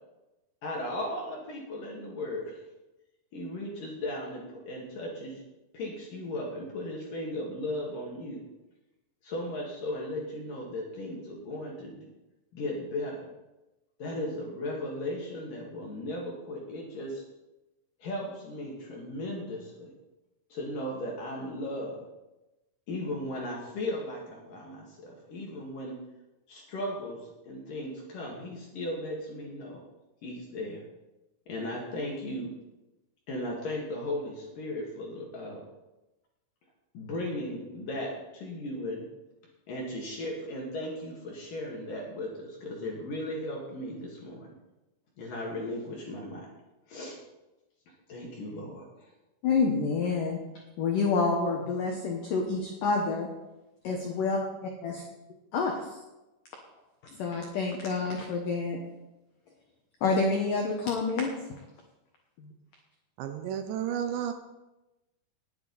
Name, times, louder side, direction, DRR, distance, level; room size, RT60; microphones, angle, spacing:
voice 1, 0.6-2.6 3.3-5.4 5.7-8.4 9.2-12.1 12.5-13.3 14.0-17.2 18.0-19.9 20.5-22.0 22.9-26.0 26.5-29.8 30.2-30.8 31.5-32.5 33.3-35.6 36.9-39.0 39.7-44.5 45.2-46.5 46.9-47.2 48.1-49.1, left 1 dB, 55° left, -2 dB, 2.8 m, -36 dB
voice 2, 49.4-50.4 50.8-53.3 53.8-55.0 55.5-56.0 57.1-58.8 60.0-61.3 62.4-62.5, left 4 dB, 80° left, 1 dB, 1.9 m, -28 dB
voice 3, 63.2-64.3, right 9 dB, 80° right, 8 dB, 2.6 m, -32 dB
19.0 x 9.4 x 4.1 m, 1.0 s
omnidirectional pair, 5.8 m